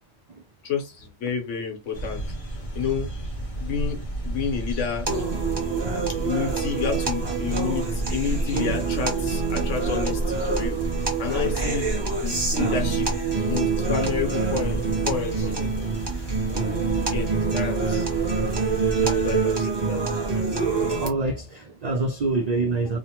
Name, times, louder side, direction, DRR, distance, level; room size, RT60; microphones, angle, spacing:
voice 1, 0.6-2.2 2.7-3.1 3.6-5.1 6.2-10.8 11.2-11.9 12.2-13.1 13.5-15.5 17.0-18.0 19.0-20.0, left 6 dB, 75° left, 1.1 m, -30 dB
sound 1, 1.9-19.4, right 1 dB, 35° left, 0.7 m, -31 dB
sound 2, 5.1-21.1, right 5 dB, 25° right, 0.7 m, -26 dB
voice 2, 20.9-23.0, right 2 dB, 75° right, 0.3 m, -26 dB
2.9 x 2.1 x 2.8 m
omnidirectional pair, 1.3 m